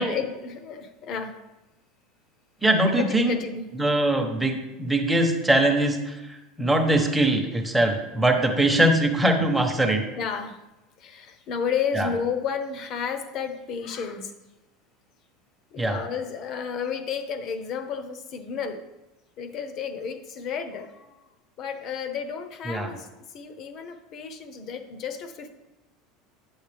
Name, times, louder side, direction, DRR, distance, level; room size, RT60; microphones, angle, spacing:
voice 1, 0.0-1.3 3.0-3.7 10.2-10.6 11.0-14.3 15.7-18.8 19.4-21.2 21.6-25.6, left 6 dB, 40° left, 8 dB, 0.8 m, -32 dB
voice 2, 2.6-3.3 3.8-10.0 11.9-12.1 15.8-16.0 22.7-22.9, right 1 dB, 5° right, 3 dB, 1.0 m, -22 dB
9.4 x 7.2 x 3.4 m, 1.0 s
supercardioid pair, 150°, 0 cm